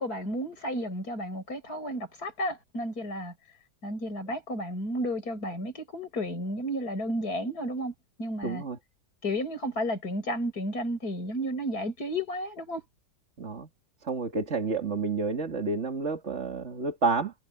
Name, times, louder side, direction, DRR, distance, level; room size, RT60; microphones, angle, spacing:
voice 1, 0.0-3.3 3.8-7.9 8.2-8.6 9.2-12.8, equal, 55° left, 6.9 m, -32 dB
voice 2, 8.4-8.8 13.4-13.7 14.0-17.3, right 4 dB, 40° right, 2.4 m, -29 dB
omnidirectional pair, 1.9 m